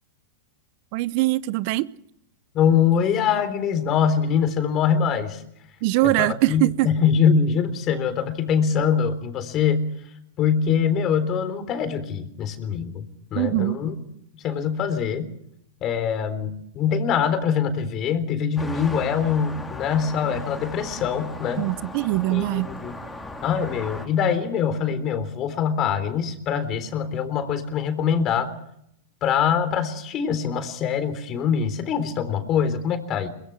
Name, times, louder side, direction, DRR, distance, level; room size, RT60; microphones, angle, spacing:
voice 1, 0.9-1.9 5.8-6.9 13.4-13.8 21.6-22.7, right 18 dB, 55° right, 0.8 m, -22 dB
voice 2, 2.5-5.4 6.0-9.9 10.4-13.0 13.3-14.0 14.4-15.3 15.8-21.7 22.3-22.9 23.4-28.5 29.2-33.3, left 7 dB, 35° left, 3.8 m, -23 dB
sound 1, 18.6-24.1, left 2 dB, 10° left, 4.1 m, -37 dB
23.5 x 21.5 x 6.1 m
hypercardioid pair, 115°, 0 cm